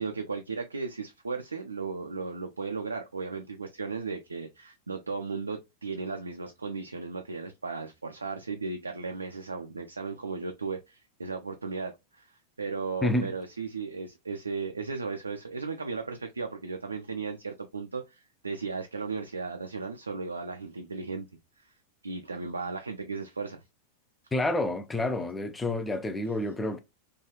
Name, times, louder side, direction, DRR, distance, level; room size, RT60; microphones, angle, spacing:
voice 1, 0.0-21.3 21.6-21.7 22.0-23.6, right 4 dB, 75° right, 0.3 m, -36 dB
voice 2, 13.0-13.3 24.3-26.8, left 2 dB, 10° left, 0.4 m, -29 dB
3.0 x 2.3 x 2.2 m
figure-of-eight pair, 90°, 0 cm